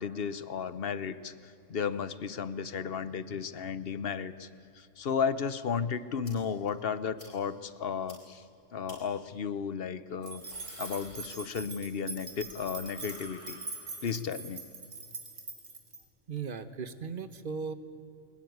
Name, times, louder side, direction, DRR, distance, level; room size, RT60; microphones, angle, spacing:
voice 1, 0.0-4.5 4.8-8.4 8.7-10.4 10.8-13.6 14.0-14.6, left 6 dB, 55° left, 15 dB, 0.9 m, -34 dB
sound 1, 6.2-6.3 6.7-6.8 7.2-7.3 7.6-7.7 8.1-8.2 8.9-9.0 10.1-11.8 12.1-14.2, left 1 dB, 70° left, 5.9 m, -52 dB
sound 2, 10.2-16.0, right 3 dB, 75° right, 3.0 m, -43 dB
voice 2, 16.3-17.7, right 5 dB, 45° right, 13 dB, 1.2 m, -37 dB
21.5 x 20.5 x 9.4 m, 2.8 s
omnidirectional pair, 1.3 m